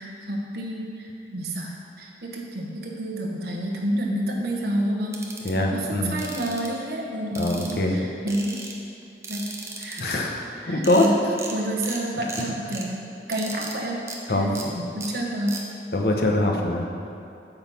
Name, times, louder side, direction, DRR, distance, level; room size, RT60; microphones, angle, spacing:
voice 1, 0.0-5.2 5.7-8.6 9.3-9.5 9.8-10.1 10.6-11.1 11.5-15.6, right 1 dB, 65° right, -1 dB, 1.0 m, -29 dB
sound 1, 5.1-5.5 6.2-6.7 7.3-7.9 8.3-8.7 9.2-10.1 10.6-10.7 10.8-11.1 11.4-11.5 11.8-12.0 12.3-12.8 13.3-13.7 14.1-14.2 14.5-14.6 15.0-15.1 15.5-15.6, right 3 dB, 15° right, 0.7 m, -36 dB
voice 2, 5.4-6.1 7.4-8.0 10.0-11.0 14.3-14.8 15.9-16.8, left 1 dB, 60° left, 1 dB, 0.9 m, -23 dB
8.8 x 4.0 x 7.0 m, 2.6 s
head